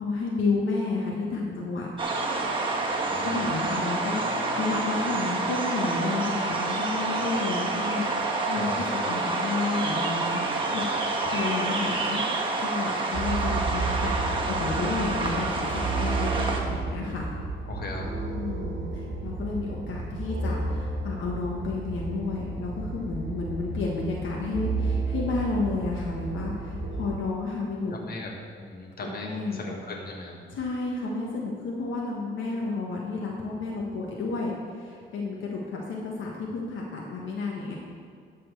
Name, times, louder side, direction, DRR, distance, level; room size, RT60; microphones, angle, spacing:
voice 1, 0.0-1.9 2.7-2.9 3.2-14.2 14.5-17.3 18.4-27.9 29.0-29.6 30.5-37.8, left 3 dB, 75° left, -2 dB, 1.4 m, -31 dB
sound 1, 2.0-16.6, right 3 dB, 25° right, 1.5 m, -28 dB
voice 2, 2.8-3.5 8.5-8.8 17.7-18.1 27.9-30.4, left 2 dB, 50° left, 0 dB, 1.8 m, -38 dB
sound 2, 13.1-27.2, right 3 dB, 45° right, 1.7 m, -32 dB
11.5 x 4.3 x 6.8 m, 2.2 s
cardioid pair, 90°, 20 cm